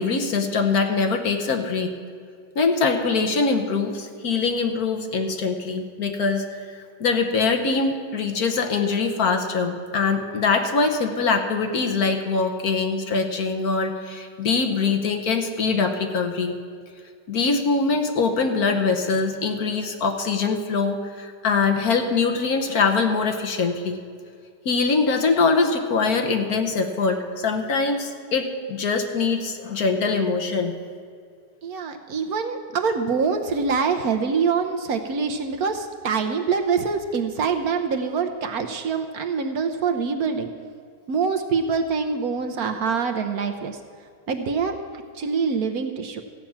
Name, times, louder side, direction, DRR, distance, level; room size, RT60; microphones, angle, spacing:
voice 1, 0.0-1.9 2.5-6.4 7.0-16.5 17.3-24.0 24.6-30.7, left 4 dB, 60° left, 4 dB, 1.4 m, -23 dB
voice 2, 31.6-40.5 41.1-43.8 44.3-44.8 45.2-46.2, right 5 dB, 65° right, 5 dB, 1.1 m, -25 dB
14.5 x 5.9 x 8.7 m, 2.2 s
omnidirectional pair, 1.9 m